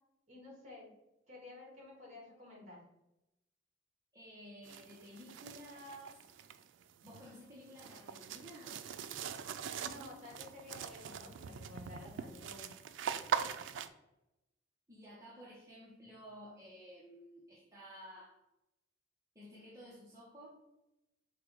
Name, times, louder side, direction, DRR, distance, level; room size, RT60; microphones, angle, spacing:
voice 1, 0.3-0.9 1.3-2.8 9.8-12.7, left 2 dB, 40° right, -2 dB, 1.6 m, -52 dB
voice 2, 4.1-6.2 7.0-8.8 14.9-18.4 19.3-20.5, equal, 15° right, -7 dB, 0.8 m, -53 dB
sound 1, 4.6-13.9, right 7 dB, 85° right, 0.3 m, -42 dB
4.8 x 2.2 x 4.5 m, 0.91 s
head